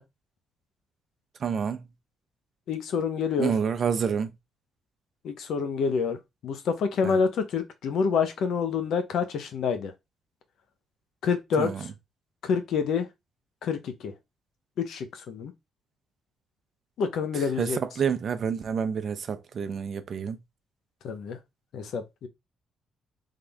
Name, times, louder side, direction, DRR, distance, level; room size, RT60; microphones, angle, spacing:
voice 1, 1.4-1.8 3.4-4.3 7.0-7.2 11.6-11.8 17.6-17.7 18.0-20.4, right 7 dB, 50° right, 0.7 m, -28 dB
voice 2, 2.7-3.5 5.2-9.9 11.2-11.9 12.4-13.1 13.6-14.1 14.8-15.5 17.0-17.8 21.0-21.4 21.7-22.3, left 6 dB, 75° left, 0.9 m, -27 dB
3.8 x 3.7 x 3.4 m
cardioid pair, 90°, 0 cm